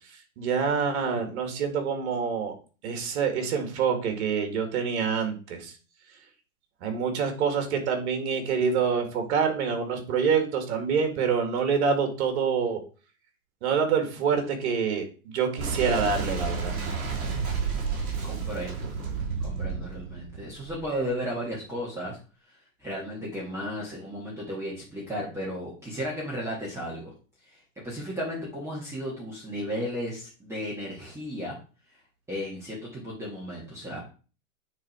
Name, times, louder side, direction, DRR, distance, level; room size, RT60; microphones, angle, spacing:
voice 1, 0.1-2.5 2.8-5.7 6.8-12.8 13.6-16.8, right 6 dB, 50° right, 6 dB, 2.3 m, -26 dB
Boom, 15.6-21.1, right 5 dB, 35° right, 3.4 m, -31 dB
voice 2, 18.2-18.9 19.4-22.2 22.5-27.1 27.4-31.5 32.3-34.0, equal, 5° right, -6 dB, 2.1 m, -34 dB
9.4 x 3.9 x 4.5 m, 0.37 s
hypercardioid pair, 140°, 41 cm